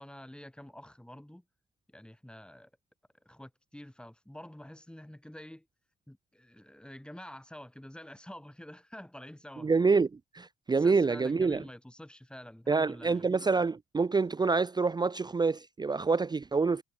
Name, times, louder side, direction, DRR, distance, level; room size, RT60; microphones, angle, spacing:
voice 1, 0.0-1.4 1.9-2.7 3.2-5.7 6.1-9.7 10.8-13.3, left 1 dB, 5° left, 7.8 m, -48 dB
voice 2, 9.6-10.1 10.3-11.6 12.7-16.8, right 4 dB, 20° right, 0.5 m, -27 dB
cardioid pair, 90°, 20 cm